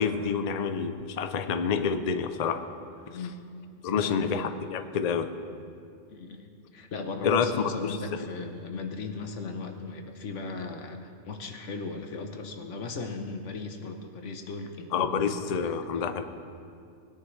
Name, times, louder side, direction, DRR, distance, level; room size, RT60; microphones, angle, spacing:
voice 1, 0.0-2.6 3.8-5.3 7.2-7.5 7.8-8.0 14.9-16.2, left 6 dB, 45° left, 8 dB, 0.5 m, -28 dB
voice 2, 3.9-4.3 6.1-15.3 15.6-15.8, left 4 dB, 85° left, 5 dB, 1.3 m, -37 dB
20.0 x 10.5 x 3.2 m, 2.4 s
omnidirectional pair, 1.2 m